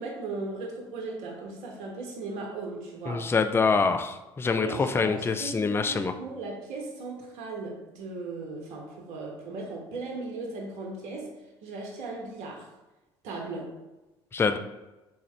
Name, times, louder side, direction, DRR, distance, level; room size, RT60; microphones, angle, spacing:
voice 1, 0.0-3.3 4.6-11.3 11.6-12.7 13.2-13.7, right 3 dB, 65° right, 0 dB, 0.8 m, -37 dB
voice 2, 3.1-6.1 14.3-14.6, left 4 dB, 15° left, 8 dB, 0.3 m, -25 dB
3.5 x 2.9 x 3.2 m, 1.1 s
hypercardioid pair, 60°, 14 cm